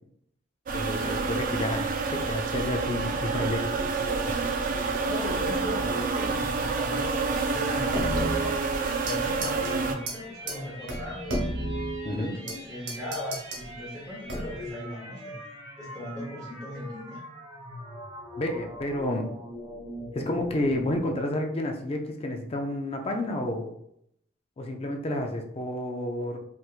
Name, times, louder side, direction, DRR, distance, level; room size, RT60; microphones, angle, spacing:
voice 1, 0.7-3.9 12.0-12.3 18.4-19.3 20.1-23.7 24.6-26.4, left 1 dB, 30° left, 3 dB, 0.4 m, -30 dB
sound 1, 0.7-9.9, right 4 dB, 45° right, 0.4 m, -28 dB
sound 2, 3.1-21.2, equal, 30° right, 0.9 m, -42 dB
voice 2, 4.5-11.6 12.1-15.4 15.8-17.2, left 1 dB, 5° left, -9 dB, 0.9 m, -38 dB
sound 3, 7.9-9.2 9.4-9.7 10.1-10.2 10.5-10.6 10.9-12.6 12.9-13.6 14.3-14.7, right 1 dB, 70° right, 0.8 m, -32 dB
3.3 x 3.0 x 2.4 m, 0.72 s
head